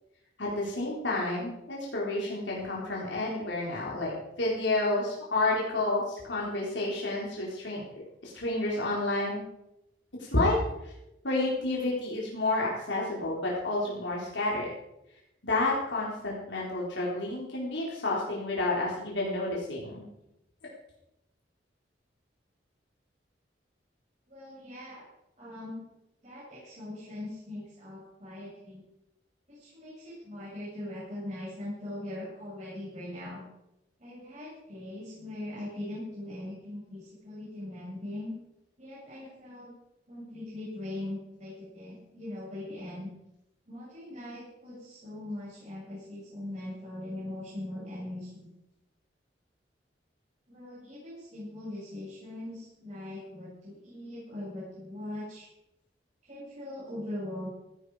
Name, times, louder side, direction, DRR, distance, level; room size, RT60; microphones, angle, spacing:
voice 1, 0.4-4.1 4.4-7.8 8.2-9.4 10.2-10.6 10.8-10.9 11.2-14.7 15.4-20.1, left 2 dB, 90° left, -4 dB, 4.2 m, -30 dB
voice 2, 24.3-25.1 25.4-25.8 26.2-28.8 29.5-33.4 34.0-38.4 38.8-39.7 40.1-43.1 43.7-48.5 50.5-55.5 56.2-57.5, left 1 dB, 40° right, -9 dB, 7.5 m, -40 dB
16.5 x 15.0 x 5.0 m, 0.88 s
head